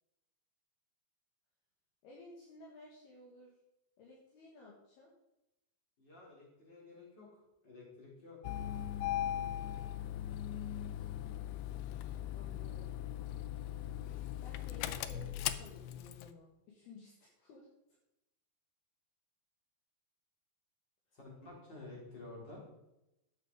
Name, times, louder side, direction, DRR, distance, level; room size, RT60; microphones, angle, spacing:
voice 1, 2.0-3.5 4.0-5.1 12.3-13.0 14.4-17.7, left 3 dB, 65° left, -2 dB, 3.6 m, -55 dB
voice 2, 6.0-8.4 21.1-22.6, left 2 dB, 25° left, -4 dB, 5.0 m, -52 dB
Engine starting, 8.4-16.3, left 11 dB, 90° left, 2.2 m, -39 dB
13.0 x 8.3 x 5.1 m, 0.90 s
omnidirectional pair, 5.0 m